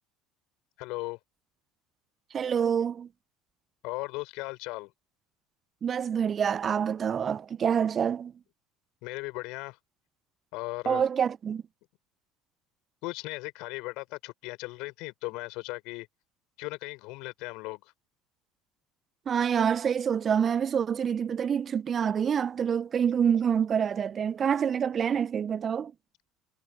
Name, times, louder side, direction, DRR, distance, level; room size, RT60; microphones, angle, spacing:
voice 1, 0.8-1.2 3.8-4.9 9.0-9.8 10.5-11.0 13.0-16.1 16.6-17.9, left 24 dB, 60° left, 7.4 m, -37 dB
voice 2, 2.3-3.1 5.8-8.3 10.8-11.6 19.3-25.9, right 7 dB, 35° right, 1.1 m, -27 dB
figure-of-eight pair, 65°, 0 cm